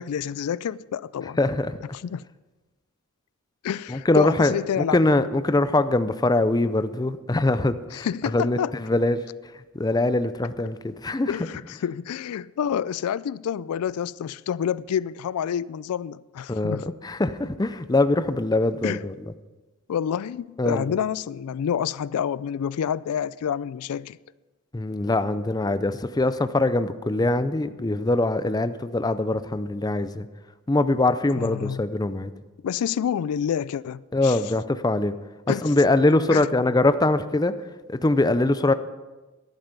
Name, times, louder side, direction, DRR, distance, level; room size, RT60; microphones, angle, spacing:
voice 1, 0.0-1.4 2.0-2.2 3.6-5.0 7.9-8.7 11.3-16.8 18.8-19.0 19.9-24.2 31.3-31.8 32.6-34.4 35.5-35.7 36.3-36.5, left 8 dB, 85° left, 0.3 m, -28 dB
voice 2, 1.4-1.8 3.9-8.1 8.3-11.3 16.5-19.1 20.6-21.0 24.7-30.3 30.7-32.3 34.1-35.2 35.5-37.6 37.9-38.7, left 2 dB, 15° left, 0.5 m, -23 dB
13.5 x 11.0 x 5.3 m
head